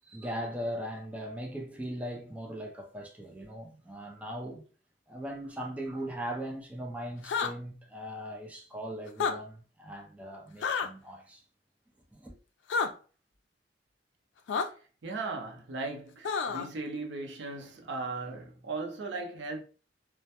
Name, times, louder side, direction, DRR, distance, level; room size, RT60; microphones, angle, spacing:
voice 1, 0.1-4.6 5.1-11.4 12.1-12.3, equal, 10° right, 0.4 m, -39 dB
sound 1, 7.2-7.5 9.1-9.3 10.6-10.9 12.7-12.9 14.5-14.7 16.2-16.7, left 5 dB, 90° left, 0.3 m, -29 dB
voice 2, 15.0-19.6, right 3 dB, 70° right, 0.5 m, -37 dB
2.1 x 2.1 x 2.8 m
head